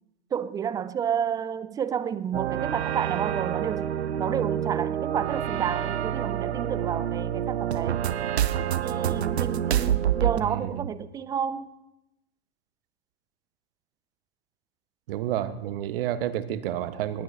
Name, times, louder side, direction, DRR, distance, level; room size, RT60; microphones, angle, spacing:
voice 1, 0.3-3.9 4.2-8.0 8.8-11.7, right 8 dB, 10° right, 0.3 m, -30 dB
sound 1, 2.3-10.4, right 10 dB, 85° right, 0.7 m, -27 dB
voice 2, 10.4-10.9 15.1-17.2, right 11 dB, 60° right, 1.1 m, -30 dB
19.0 x 9.2 x 3.6 m
hypercardioid pair, 105°, 31 cm